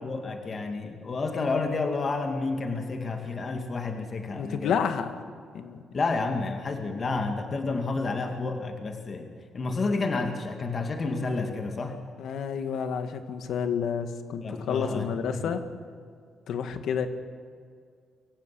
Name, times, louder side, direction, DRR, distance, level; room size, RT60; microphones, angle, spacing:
voice 1, 0.0-4.7 5.9-12.0 14.4-15.5, left 3 dB, 40° left, 5 dB, 2.3 m, -30 dB
voice 2, 4.3-5.1 5.5-5.8 12.2-15.6 16.5-17.1, left 7 dB, 70° left, 8 dB, 1.9 m, -30 dB
24.5 x 15.5 x 8.6 m, 2.1 s
cardioid pair, 90°, 0 cm